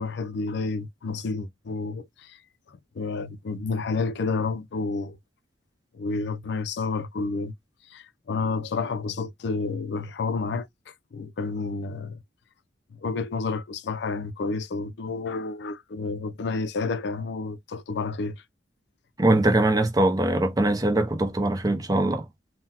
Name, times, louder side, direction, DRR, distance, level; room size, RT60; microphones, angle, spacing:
voice 1, 0.0-2.4 3.0-5.2 5.9-7.5 7.9-12.2 13.0-18.4, left 4 dB, 60° left, 0.4 m, -30 dB
voice 2, 19.2-22.2, right 2 dB, 20° right, 0.5 m, -22 dB
3.7 x 2.1 x 2.8 m
head